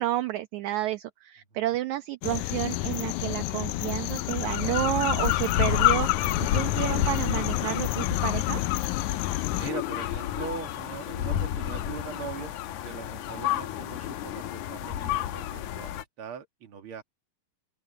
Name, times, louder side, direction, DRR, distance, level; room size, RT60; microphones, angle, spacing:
voice 1, 0.0-8.6, right 14 dB, 70° right, 1.9 m, -30 dB
sound 1, 2.2-9.7, left 16 dB, 90° left, 1.7 m, -30 dB
sound 2, 4.2-16.0, left 13 dB, 70° left, 2.0 m, -30 dB
voice 2, 9.6-17.0, right 7 dB, 45° right, 2.4 m, -41 dB
open air
omnidirectional pair, 4.2 m